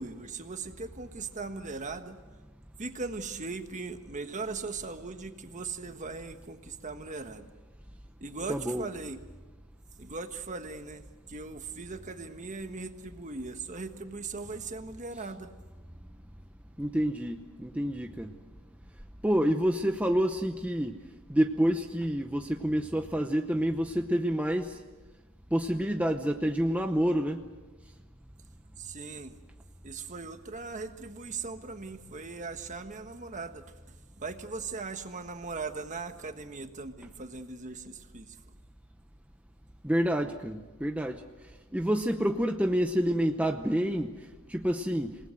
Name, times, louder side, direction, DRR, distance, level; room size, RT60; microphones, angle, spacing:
voice 1, 0.0-2.2 2.8-7.5 8.2-9.2 10.0-15.5 28.8-29.4 29.8-33.6 34.2-38.4, right 4 dB, 35° right, 8 dB, 1.4 m, -39 dB
voice 2, 8.5-8.9 16.8-18.3 19.2-21.0 21.3-24.8 25.5-27.4 39.8-41.2 41.7-45.2, equal, 5° right, 5 dB, 0.8 m, -28 dB
27.5 x 19.0 x 7.9 m, 1.3 s
head